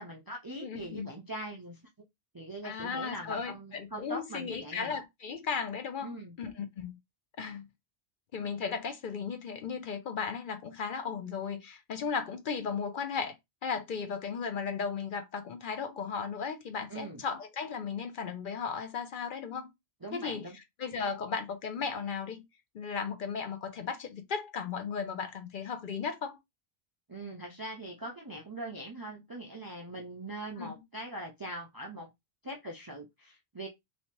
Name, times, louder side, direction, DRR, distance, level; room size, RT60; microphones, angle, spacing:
voice 1, 0.0-1.8 2.3-5.0 6.0-6.4 16.9-17.2 20.0-20.6 27.1-32.1 32.4-33.7, right 1 dB, 35° right, 0.3 m, -42 dB
voice 2, 0.6-1.1 2.6-7.0 7.4-7.7 8.3-13.3 13.6-19.7 20.1-20.5 20.8-22.4 22.7-26.4 30.6-30.8, left 6 dB, 60° left, 0.7 m, -36 dB
3.1 x 2.7 x 2.9 m
omnidirectional pair, 1.1 m